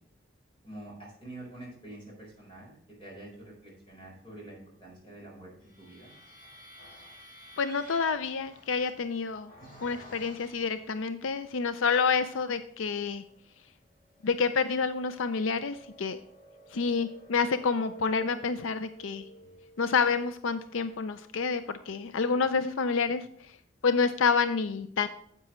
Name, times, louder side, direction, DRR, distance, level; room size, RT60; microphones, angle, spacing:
voice 1, 0.6-2.7 3.0-6.1 9.6-9.9 19.3-19.5, right 1 dB, 25° left, -2 dB, 4.3 m, -47 dB
sound 1, 5.6-11.1 11.7-12.5 12.9-22.1, equal, 40° left, 3.0 m, -54 dB
voice 2, 7.6-9.5 9.8-13.2 14.2-16.2 16.7-19.2 19.8-23.3 23.8-25.1, left 5 dB, 80° left, 11 dB, 0.5 m, -28 dB
9.8 x 8.2 x 3.1 m, 0.67 s
head